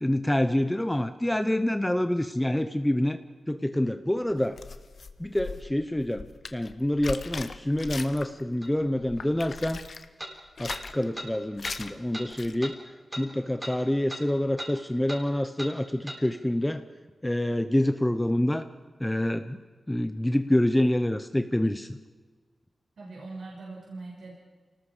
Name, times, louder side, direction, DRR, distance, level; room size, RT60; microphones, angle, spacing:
voice 1, 0.0-3.2 3.5-4.6 5.2-6.3 6.5-9.8 10.6-12.8 13.2-16.8 17.2-18.7 19.0-19.6 19.9-22.0, left 1 dB, 10° left, 9 dB, 0.9 m, -27 dB
sound 1, 4.3-8.5 8.8-10.1 10.5-11.0 11.6-11.9 12.3-12.6, left 4 dB, 60° left, 1.1 m, -39 dB
sound 2, 8.6-8.7 10.2-10.3 10.7-10.8 11.1-11.3 11.6-11.8 12.1-12.3 12.6-12.7 13.1-13.3 13.6-13.8 14.1-14.2 14.6-14.7 15.1-15.2 15.6-15.7 16.1-16.2, equal, 10° right, 3.9 m, -37 dB
voice 2, 23.0-24.3, right 3 dB, 75° right, -3 dB, 5.9 m, -41 dB
28.5 x 19.5 x 5.1 m, 1.4 s
wide cardioid pair, 110°, 0 cm